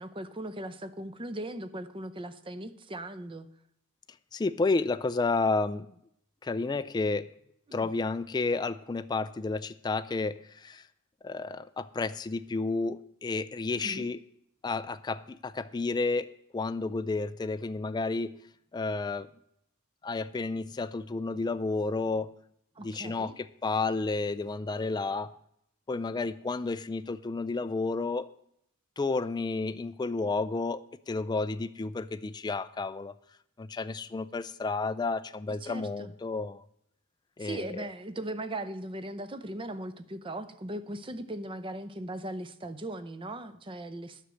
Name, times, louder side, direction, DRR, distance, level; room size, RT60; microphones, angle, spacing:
voice 1, 0.0-3.5 7.7-7.9 13.8-14.1 22.8-23.3 35.6-36.1 37.4-44.3, right 1 dB, 25° right, 12 dB, 0.6 m, -39 dB
voice 2, 4.3-5.9 6.4-7.3 7.7-10.8 11.2-14.2 14.6-18.3 18.7-19.3 20.0-22.3 22.8-25.3 25.9-28.3 29.0-33.1 33.6-36.6 37.4-37.9, left 3 dB, 20° left, 12 dB, 0.3 m, -31 dB
9.9 x 6.2 x 7.7 m, 0.72 s
head